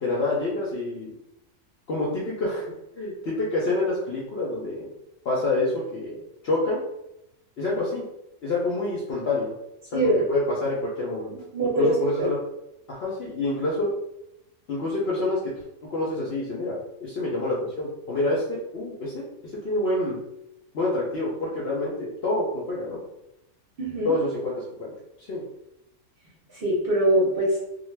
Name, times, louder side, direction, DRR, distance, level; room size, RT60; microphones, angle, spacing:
voice 1, 0.0-1.1 1.9-2.7 3.0-4.9 5.2-6.2 6.4-6.8 7.6-8.0 8.4-9.5 9.9-10.0 10.3-11.3 11.8-12.4 12.9-13.9 14.7-15.5 15.8-19.3 19.6-20.2 20.7-23.0 24.0-24.9 25.3-25.4, left 2 dB, 60° left, -5 dB, 0.7 m, -27 dB
voice 2, 11.3-12.3 23.8-24.1 26.5-27.6, right 1 dB, 50° right, -6 dB, 0.7 m, -23 dB
2.4 x 2.2 x 3.1 m, 0.86 s
omnidirectional pair, 1.6 m